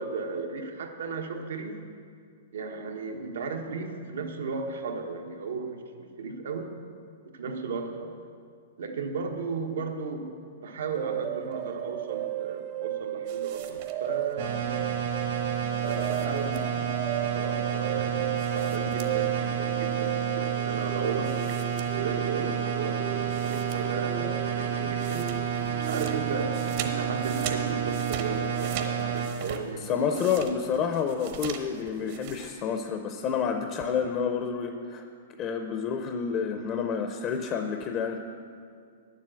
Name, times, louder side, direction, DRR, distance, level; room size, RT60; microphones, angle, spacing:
voice 1, 0.0-1.8 2.5-6.7 7.3-8.1 8.8-10.3 10.6-14.9 15.8-21.4 21.9-25.4 25.9-30.4, right 4 dB, 80° right, 4 dB, 1.2 m, -35 dB
sound 1, 11.0-28.4, right 13 dB, 30° right, 0.3 m, -35 dB
sound 2, 13.3-14.3 15.8-17.0 18.4-19.4 19.7-19.8 21.2-22.4 22.9-23.0 23.3-24.1 24.4-32.5, right 8 dB, 45° right, 0.9 m, -42 dB
sound 3, 14.4-29.3, right 8 dB, 60° right, 1.5 m, -30 dB
voice 2, 29.9-35.0 35.4-38.2, left 6 dB, 25° left, 5 dB, 0.5 m, -29 dB
9.6 x 7.5 x 7.5 m, 2.2 s
hypercardioid pair, 160°, 0 cm